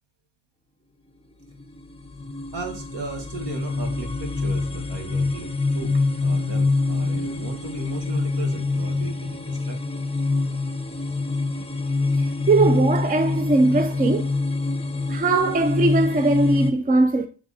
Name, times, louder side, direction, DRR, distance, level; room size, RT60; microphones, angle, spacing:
sound 1, 1.4-16.7, left 3 dB, 15° left, 0.8 m, -25 dB
voice 1, 2.5-9.8, right 3 dB, 60° right, 2.2 m, -36 dB
voice 2, 12.5-14.3 15.1-17.3, right 2 dB, 20° right, 0.5 m, -20 dB
7.5 x 3.5 x 4.1 m
cardioid pair, 105°, 47 cm